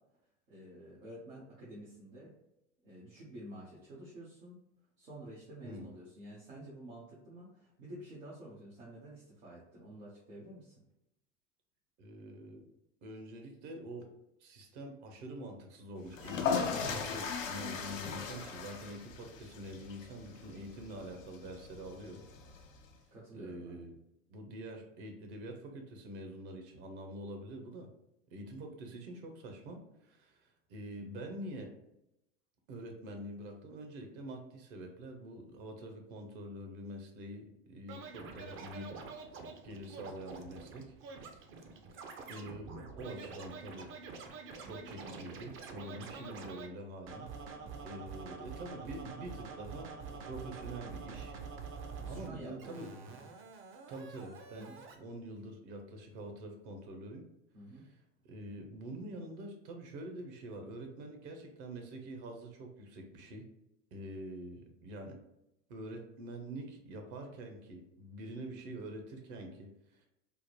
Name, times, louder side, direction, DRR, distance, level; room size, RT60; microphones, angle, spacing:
voice 1, 0.5-2.3 2.8-4.6 5.0-10.7 23.1-23.8 44.6-44.8 47.6-47.7 52.0-53.3 54.5-54.8 57.5-57.8, right 1 dB, 90° right, -8 dB, 1.1 m, -50 dB
voice 2, 12.0-12.7 13.0-14.1 14.4-22.2 23.3-23.9 24.3-27.9 28.3-31.7 32.7-39.3 39.6-40.9 41.2-41.5 42.3-44.0 44.6-47.3 47.8-51.4 52.1-52.9 53.9-57.2 57.8-57.9 58.2-63.5 63.9-65.2 65.7-70.1, right 1 dB, 60° right, 4 dB, 1.0 m, -46 dB
sound 1, 16.1-22.9, left 5 dB, 90° left, 0.6 m, -38 dB
Scratching (performance technique), 37.9-46.7 47.1-52.3 52.6-55.0, right 4 dB, 35° right, 0.5 m, -47 dB
3.5 x 2.1 x 3.0 m, 0.85 s
hypercardioid pair, 90°, 38 cm